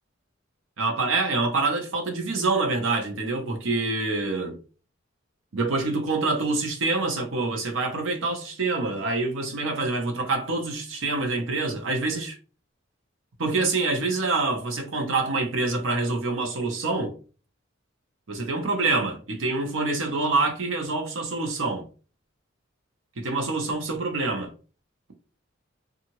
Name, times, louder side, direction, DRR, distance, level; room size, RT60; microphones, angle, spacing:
voice 1, 0.8-4.6 5.5-12.4 13.4-17.1 18.3-21.8 23.2-24.5, right 3 dB, 80° right, 0.8 m, -26 dB
2.7 x 2.4 x 2.9 m
head